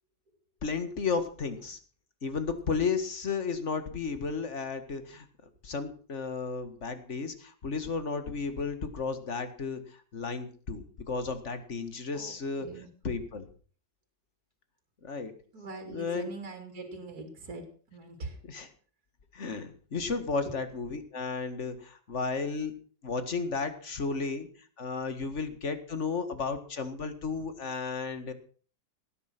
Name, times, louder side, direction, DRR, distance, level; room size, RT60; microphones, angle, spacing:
voice 1, 0.6-1.8 2.2-5.3 5.6-9.8 10.1-12.7 13.0-13.5 15.0-15.3 15.9-16.3 18.5-18.7 19.3-22.7 23.0-24.5 24.8-28.3, left 4 dB, 45° left, 10 dB, 2.1 m, -33 dB
voice 2, 12.1-12.9 15.5-17.7 17.9-18.4, right 3 dB, 60° right, 5 dB, 3.4 m, -42 dB
18.0 x 10.5 x 6.1 m, 0.43 s
omnidirectional pair, 1.9 m